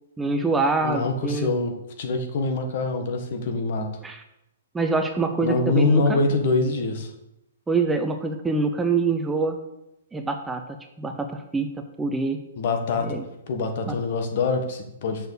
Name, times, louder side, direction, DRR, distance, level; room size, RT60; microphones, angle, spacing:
voice 1, 0.2-1.5 4.0-4.2 4.7-6.2 7.7-9.6 10.1-11.7 12.0-12.4 13.0-13.2 13.9-14.0, right 3 dB, 5° right, 5 dB, 0.6 m, -25 dB
voice 2, 0.8-3.9 5.4-7.1 12.6-13.2 13.5-15.3, left 3 dB, 50° left, 5 dB, 1.5 m, -24 dB
6.8 x 6.4 x 6.6 m, 0.87 s
hypercardioid pair, 155°, 0 cm